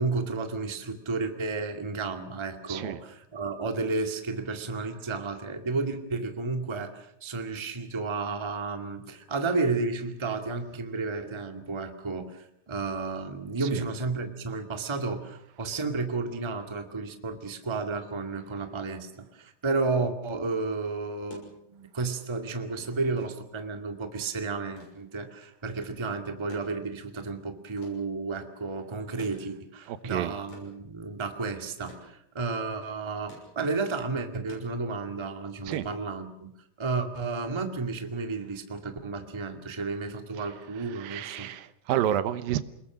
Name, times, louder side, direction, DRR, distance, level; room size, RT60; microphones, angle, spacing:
voice 1, 0.0-21.4 21.7-36.5 36.8-41.5, right 3 dB, 10° right, 5 dB, 1.3 m, -32 dB
voice 2, 2.7-3.0 13.6-13.8 29.9-30.3 35.7-35.9 40.9-42.7, right 11 dB, 85° right, 13 dB, 2.8 m, -30 dB
sound 1, 21.3-36.6 37.8-37.9, left 1 dB, 50° left, 7.9 m, -54 dB
29.0 x 20.0 x 6.3 m, 0.78 s
omnidirectional pair, 4.1 m